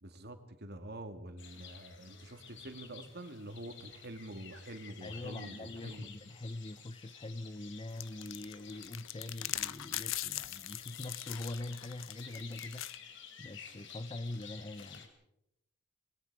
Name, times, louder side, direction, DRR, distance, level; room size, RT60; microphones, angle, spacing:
voice 1, 0.0-6.1, right 1 dB, 55° right, 8 dB, 2.2 m, -46 dB
sound 1, 1.4-15.1, left 7 dB, 65° left, 3.1 m, -52 dB
voice 2, 5.0-15.1, left 2 dB, 25° left, 13 dB, 0.7 m, -43 dB
sound 2, 8.0-13.0, left 14 dB, 85° left, 0.8 m, -40 dB
27.0 x 21.0 x 4.8 m, 0.82 s
head